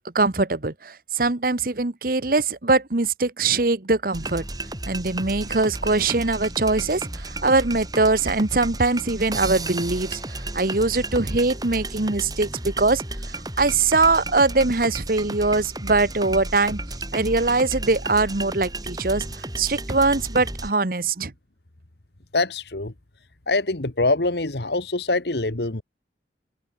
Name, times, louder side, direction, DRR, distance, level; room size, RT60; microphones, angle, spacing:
voice 1, 0.1-4.4 4.9-13.0 13.6-16.8 17.1-19.2 19.6-21.3, right 3 dB, 50° right, 1.2 m, -22 dB
sound 1, 4.1-20.7, right 2 dB, 20° right, 7.4 m, -33 dB
voice 2, 22.3-22.9 23.5-25.8, left 2 dB, 70° left, 1.7 m, -24 dB
head